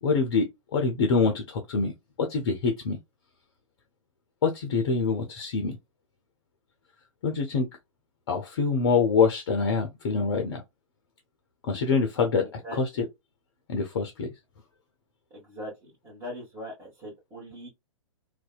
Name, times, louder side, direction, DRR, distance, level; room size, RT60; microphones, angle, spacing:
voice 1, 0.0-1.9 2.2-3.0 4.4-5.8 7.2-7.7 8.3-10.6 11.7-13.1 13.7-14.3, left 4 dB, 45° left, 0.5 m, -25 dB
voice 2, 15.3-17.7, equal, 15° right, 1.1 m, -40 dB
2.6 x 2.2 x 2.2 m
figure-of-eight pair, 115°, 16 cm